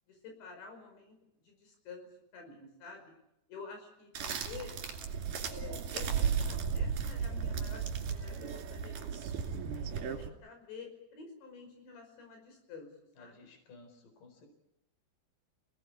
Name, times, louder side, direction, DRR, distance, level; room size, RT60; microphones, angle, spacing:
voice 1, 0.1-2.1 2.3-3.1 3.5-4.8 5.4-9.3 9.7-12.9 13.2-13.5, left 5 dB, 90° left, 4 dB, 7.6 m, -50 dB
sound 1, 4.1-10.3, right 6 dB, 55° right, 3.7 m, -35 dB
voice 2, 13.2-14.5, left 3 dB, 50° left, 6 dB, 5.9 m, -56 dB
28.5 x 18.5 x 8.6 m, 0.84 s
omnidirectional pair, 5.0 m